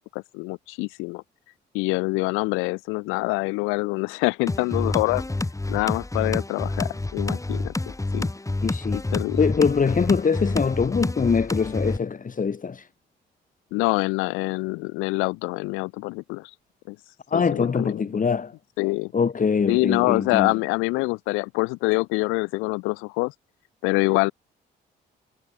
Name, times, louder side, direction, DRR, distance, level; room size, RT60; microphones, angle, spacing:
voice 1, 0.1-1.2 1.7-5.2 5.7-8.2 9.1-9.5 13.7-16.5 16.9-17.0 17.3-18.1 18.8-19.1 19.7-23.3 23.8-24.3, left 25 dB, 90° left, 4.1 m, -25 dB
sound 1, 4.5-12.0, left 2 dB, 15° left, 3.1 m, -28 dB
voice 2, 8.6-9.0 9.4-12.9 17.3-18.5 19.1-20.5, left 5 dB, 40° left, 3.5 m, -23 dB
supercardioid pair, 60°, 20 cm